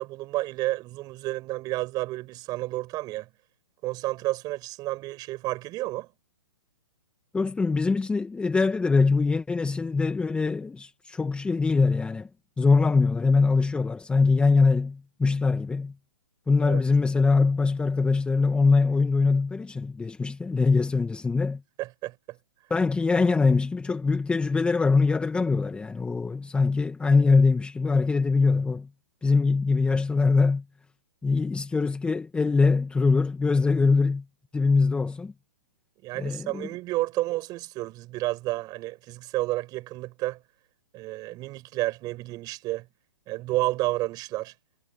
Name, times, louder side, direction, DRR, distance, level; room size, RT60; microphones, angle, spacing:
voice 1, 0.0-3.3 3.8-6.1 16.6-16.8 21.8-22.4 36.0-40.4 40.9-42.9 43.3-44.5, right 18 dB, 25° right, 7.1 m, -31 dB
voice 2, 7.3-12.3 12.6-15.9 16.5-21.6 22.7-28.9 29.2-30.6 31.2-34.2 34.5-35.3 36.2-36.7, left 4 dB, 5° left, 2.1 m, -23 dB
hypercardioid pair, 135°, 15 cm